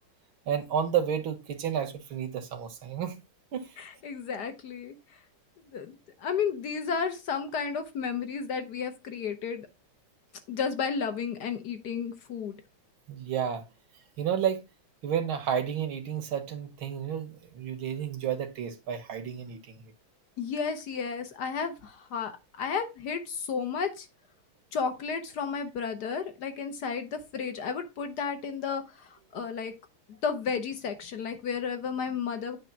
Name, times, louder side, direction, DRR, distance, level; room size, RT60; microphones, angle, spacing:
voice 1, 0.5-3.2 3.5-3.8 13.1-13.6 14.2-14.6 15.0-19.9, right 8 dB, 80° right, 2.1 m, -31 dB
voice 2, 3.8-5.0 5.7-9.7 10.5-12.6 20.4-24.1 24.7-29.7 30.1-32.6, left 6 dB, 60° left, 1.5 m, -32 dB
9.0 x 3.2 x 5.9 m
omnidirectional pair, 2.2 m